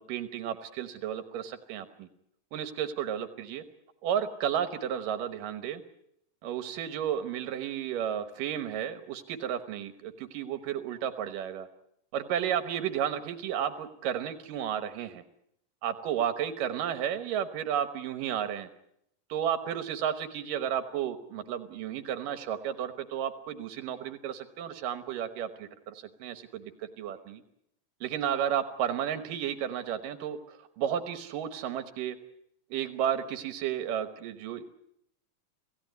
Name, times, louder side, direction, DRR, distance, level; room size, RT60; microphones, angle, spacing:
voice 1, 0.1-2.1 2.5-3.6 4.0-5.8 6.4-11.7 12.1-15.2 15.8-18.7 19.3-27.4 28.0-32.2 32.7-34.6, right 9 dB, 80° right, 10 dB, 2.7 m, -33 dB
27.5 x 16.0 x 9.3 m, 0.78 s
omnidirectional pair, 3.8 m